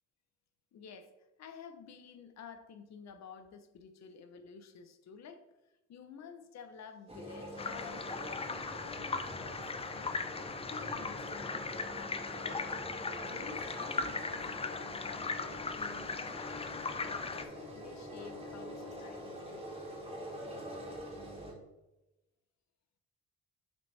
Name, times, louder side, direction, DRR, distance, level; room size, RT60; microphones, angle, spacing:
voice 1, 0.7-1.1 1.4-5.5 5.9-10.2 10.7-12.7 13.2-19.8, left 6 dB, 65° left, 8 dB, 0.8 m, -51 dB
sound 1, 7.1-21.5, equal, 20° right, 2.1 m, -45 dB
sound 2, 7.6-17.4, left 4 dB, 20° left, 0.5 m, -38 dB
7.4 x 4.2 x 3.3 m, 0.98 s
cardioid pair, 90°, 30 cm